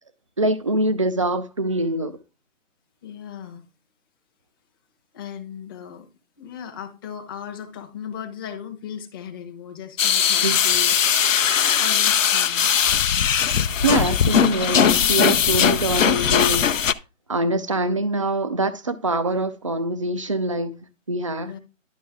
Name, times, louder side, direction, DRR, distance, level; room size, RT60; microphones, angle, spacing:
voice 1, 0.4-2.2 10.4-10.6 13.8-16.9 17.3-20.7 21.1-21.5, right 2 dB, 25° right, 0.5 m, -24 dB
voice 2, 3.0-3.7 5.1-6.1 6.4-12.7 21.4-21.6, left 8 dB, 15° left, 0.9 m, -37 dB
sound 1, 10.0-16.9, left 8 dB, 75° left, 0.8 m, -19 dB
11.0 x 6.0 x 3.6 m
hypercardioid pair, 155°, 39 cm